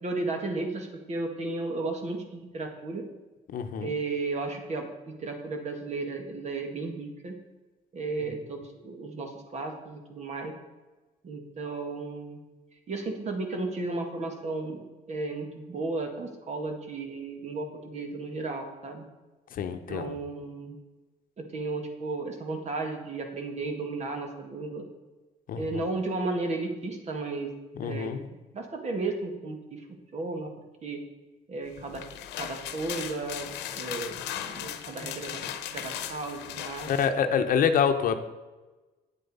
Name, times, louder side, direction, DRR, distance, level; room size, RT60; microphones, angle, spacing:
voice 1, 0.0-3.0 3.8-7.4 7.9-10.5 11.2-12.4 12.9-19.0 19.9-20.8 21.4-24.9 25.5-27.5 27.8-28.1 28.5-29.9 30.1-30.5 30.8-31.0 31.5-32.0 32.4-34.2 34.4-35.5 35.7-36.9, right 3 dB, 40° right, 4 dB, 1.9 m, -34 dB
voice 2, 3.5-3.9 19.6-20.2 25.5-25.6 27.8-28.2 36.9-38.2, left 7 dB, 55° left, 7 dB, 0.9 m, -26 dB
sound 1, 31.8-37.1, left 10 dB, 85° left, 1.0 m, -37 dB
9.3 x 7.7 x 5.5 m, 1.2 s
cardioid pair, 110°, 17 cm